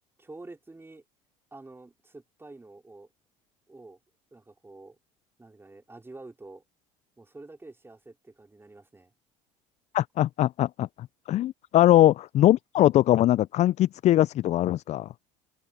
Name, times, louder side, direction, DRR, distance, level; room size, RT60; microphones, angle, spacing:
voice 1, 0.2-1.0 1.5-3.1 3.7-4.0 4.3-5.0 5.4-6.6 7.2-9.1 13.1-13.2, right 2 dB, 15° right, 4.0 m, -48 dB
voice 2, 9.9-10.9 11.3-15.1, left 13 dB, 45° left, 0.4 m, -21 dB
hypercardioid pair, 75°, 16 cm